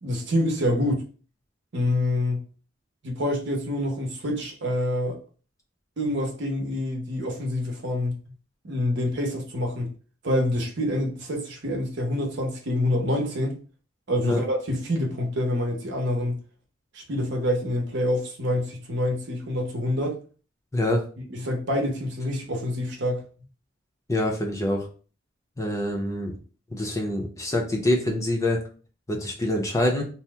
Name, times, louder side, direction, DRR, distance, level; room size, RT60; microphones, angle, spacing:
voice 1, 0.0-1.0 1.7-2.4 3.0-5.2 6.0-8.2 8.6-9.9 10.2-13.5 14.1-16.4 16.9-20.2 21.3-23.2, left 1 dB, 65° right, 0.8 m, -26 dB
voice 2, 20.7-21.0 24.1-24.9 25.6-26.4 26.7-28.6 29.1-30.0, left 1 dB, 15° left, 0.6 m, -25 dB
2.8 x 2.0 x 3.3 m
head